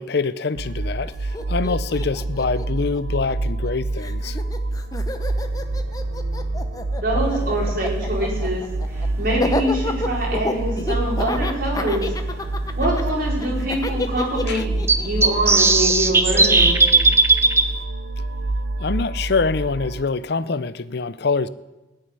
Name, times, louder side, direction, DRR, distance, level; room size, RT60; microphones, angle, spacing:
voice 1, 0.0-4.4 14.5-14.6 18.8-21.5, left 4 dB, 55° left, 16 dB, 0.5 m, -25 dB
sound 1, 0.5-20.0, right 2 dB, 70° right, 0.5 m, -27 dB
Laughter, 1.0-1.1 1.3-3.7 4.0-17.0, left 2 dB, 20° left, 0.8 m, -30 dB
voice 2, 7.0-8.6 8.9-12.1 12.7-16.8, right 1 dB, 45° right, -2 dB, 4.5 m, -25 dB
sound 2, 9.3-9.4 11.4-11.5 12.0-12.1 12.3-12.4 14.9-17.6, right 3 dB, 15° right, 0.7 m, -16 dB
18.0 x 6.6 x 10.0 m, 1.1 s
head